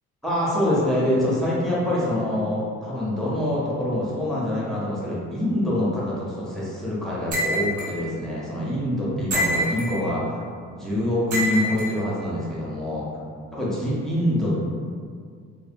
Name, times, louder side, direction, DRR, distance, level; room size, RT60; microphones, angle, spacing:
voice 1, 0.2-10.4 10.7-13.1 13.5-14.5, left 1 dB, ahead, -7 dB, 0.7 m, -25 dB
sound 1, 7.3-7.9 9.3-10.0 11.3-11.9, right 1 dB, 75° right, 0.8 m, -25 dB
2.6 x 2.1 x 2.5 m, 2.1 s
cardioid pair, 90°, 30 cm